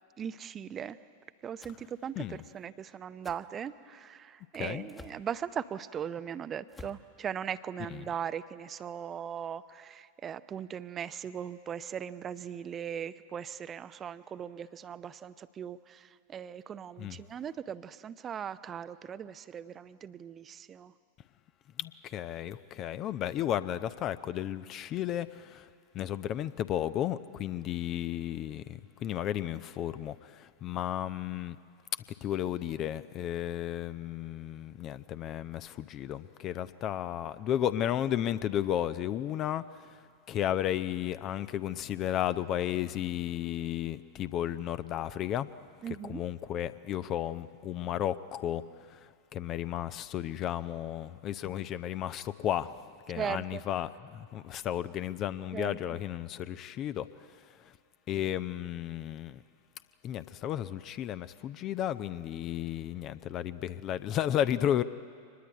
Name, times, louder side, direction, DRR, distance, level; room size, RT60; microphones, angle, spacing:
voice 1, 0.2-1.0 1.4-20.9 45.8-46.2 53.1-53.6 55.5-55.8, right 8 dB, 25° right, 0.6 m, -39 dB
sound 1, 1.6-1.8 3.2-3.4 4.9-5.2 6.7-7.1, left 3 dB, 15° left, 1.3 m, -49 dB
voice 2, 21.8-25.7 25.9-31.6 32.2-39.6 39.9-40.0 40.3-45.5 46.0-48.6 48.9-52.8 53.1-57.1 58.1-59.4 60.0-64.8, left 11 dB, 35° left, 0.7 m, -33 dB
24.0 x 20.0 x 9.3 m
figure-of-eight pair, 90°, 0 cm